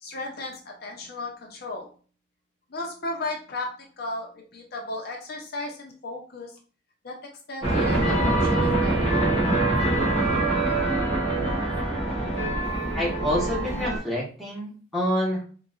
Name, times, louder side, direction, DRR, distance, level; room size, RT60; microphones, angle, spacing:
voice 1, 0.0-2.0 2.7-6.6 7.0-7.1 7.5-9.4, left 2 dB, 55° left, 1 dB, 0.6 m, -35 dB
sound 1, 7.6-14.0, right 2 dB, 30° right, 1.4 m, -24 dB
voice 2, 12.9-15.4, left 1 dB, ahead, -6 dB, 1.0 m, -27 dB
3.8 x 2.3 x 2.3 m, 0.40 s
head